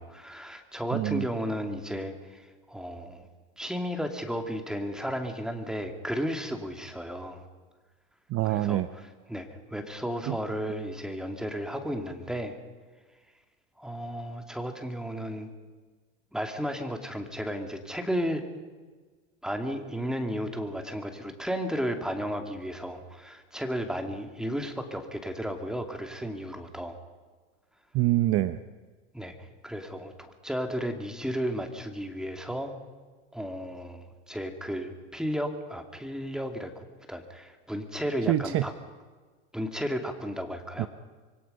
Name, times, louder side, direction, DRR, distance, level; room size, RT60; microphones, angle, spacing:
voice 1, 0.0-2.4 2.7-3.2 3.6-7.4 8.4-12.6 13.8-15.5 16.3-18.5 19.4-27.0 29.1-32.7 33.3-38.7 39.5-40.9, equal, ahead, 5 dB, 2.5 m, -34 dB
voice 2, 0.9-1.2 8.3-8.9 10.3-10.4 27.9-28.6 38.3-38.6 40.8-40.9, right 15 dB, 40° right, 12 dB, 0.9 m, -25 dB
26.0 x 23.0 x 5.6 m, 1.4 s
supercardioid pair, 130°, 35 cm